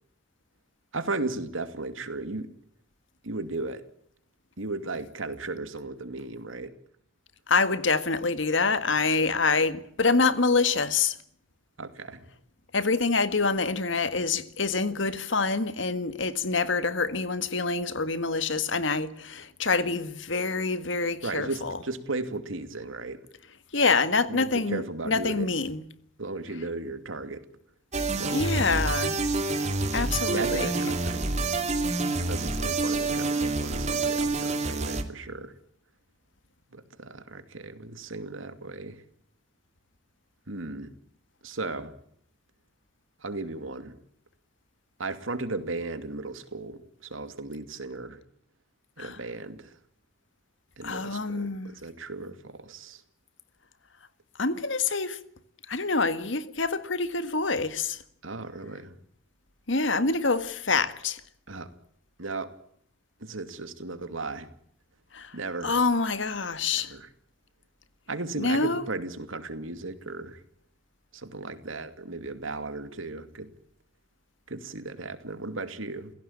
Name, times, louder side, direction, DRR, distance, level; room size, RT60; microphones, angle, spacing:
voice 1, 0.9-2.5 3.2-3.8 4.6-6.7 11.8-12.3 21.2-23.2 24.3-25.5 26.2-27.5 28.1-28.6 30.3-31.3 32.2-35.5 36.7-39.0 40.5-40.9 41.4-41.9 43.2-44.0 45.0-48.2 49.0-49.8 50.8-53.0 58.2-59.0 61.5-61.7 62.2-62.5 63.2-64.5 65.3-65.7 66.7-67.1 68.1-70.4 71.1-73.5 74.5-76.1, right 3 dB, 90° right, 2.6 m, -36 dB
voice 2, 7.5-11.2 12.7-21.8 23.7-25.8 28.3-29.2 29.9-30.7 49.0-49.2 50.8-51.8 54.4-55.2 55.7-58.0 59.7-61.2 65.1-65.4 65.6-67.0 68.4-68.8, left 4 dB, 65° left, 1.8 m, -26 dB
sound 1, 27.9-35.0, right 3 dB, 35° right, 2.7 m, -27 dB
28.5 x 16.5 x 8.8 m
head